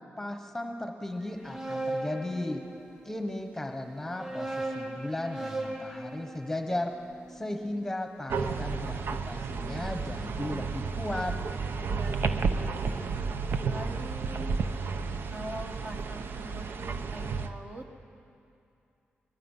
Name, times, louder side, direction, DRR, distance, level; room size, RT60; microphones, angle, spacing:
voice 1, 0.2-2.6 3.0-6.9 7.3-11.4, left 1 dB, 10° left, 4 dB, 1.2 m, -35 dB
sound 1, 1.2-3.1 3.9-8.0, right 2 dB, 15° right, 2.9 m, -38 dB
sound 2, 8.3-17.5, right 4 dB, 65° right, 0.8 m, -32 dB
voice 2, 11.9-13.2 13.6-14.6 15.3-16.7 17.1-18.0, right 1 dB, 35° right, 3 dB, 1.7 m, -43 dB
22.0 x 22.0 x 5.6 m, 2.6 s
wide cardioid pair, 140°, 4 cm